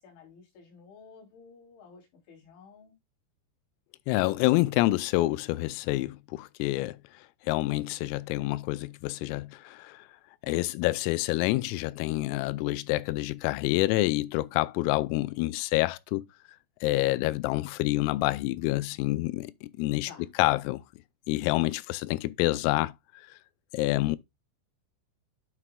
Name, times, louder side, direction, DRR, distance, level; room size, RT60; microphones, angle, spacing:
voice 1, 0.0-2.9 20.0-20.3, left 5 dB, 65° left, 5.3 m, -52 dB
voice 2, 4.1-7.0 7.5-10.0 10.4-16.3 16.8-20.1 20.4-20.8 21.3-22.9 23.7-24.2, left 19 dB, 85° left, 3.2 m, -27 dB
9.7 x 6.1 x 2.2 m
omnidirectional pair, 5.9 m